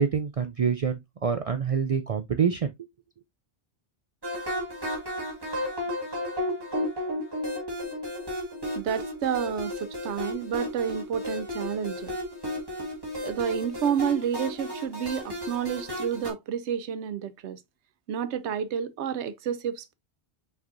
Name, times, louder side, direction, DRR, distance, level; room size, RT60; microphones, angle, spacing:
voice 1, 0.0-2.7, right 6 dB, 65° right, 0.3 m, -26 dB
sound 1, 4.2-16.3, left 1 dB, 20° right, 1.5 m, -33 dB
voice 2, 8.7-12.1 13.2-17.6 18.1-19.9, right 8 dB, 85° right, 0.9 m, -30 dB
5.9 x 3.4 x 2.5 m
omnidirectional pair, 1.2 m